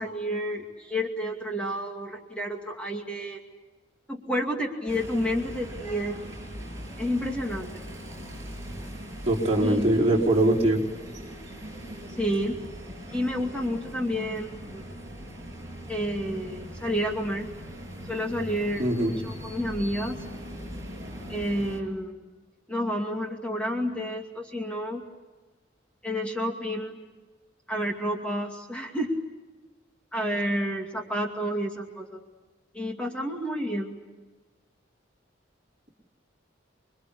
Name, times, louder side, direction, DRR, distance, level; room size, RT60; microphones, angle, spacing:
voice 1, 0.0-3.4 4.1-6.2 7.0-7.7 9.6-9.8 12.2-12.6 13.1-14.8 15.9-17.5 18.1-20.2 21.3-22.2 22.7-25.0 26.0-27.0 27.7-29.1 30.1-32.2 32.7-34.0, equal, 5° left, 0 dB, 2.5 m, -30 dB
sound 1, 4.9-21.8, equal, 15° right, 7.3 m, -40 dB
voice 2, 9.3-10.8 18.8-19.1, right 1 dB, 35° right, -2 dB, 4.3 m, -22 dB
27.5 x 23.0 x 8.5 m, 1.3 s
head